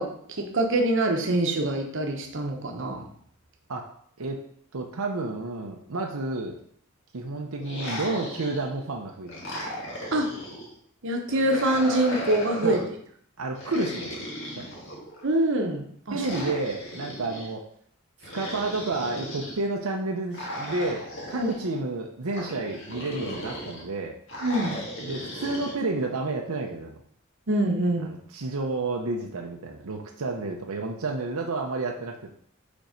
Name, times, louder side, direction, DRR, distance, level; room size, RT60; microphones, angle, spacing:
voice 1, 0.0-3.0 10.1-10.3 11.0-12.8 15.2-16.2 21.3-21.5 24.4-24.8 27.5-28.2, right 1 dB, 60° right, 3 dB, 1.0 m, -25 dB
voice 2, 4.7-6.6 7.1-9.3 12.6-12.9 13.4-14.2 14.6-14.7 16.1-17.6 18.2-24.1 25.0-27.0 28.0-32.3, right 2 dB, 85° right, 1 dB, 0.8 m, -30 dB
sound 1, 7.6-8.8 9.3-10.7 11.3-12.9 13.6-15.3 16.2-17.5 18.2-19.6 20.3-21.6 22.3-23.8 24.3-25.8, equal, 60° left, 1.8 m, -36 dB
5.2 x 4.5 x 5.1 m, 0.63 s
head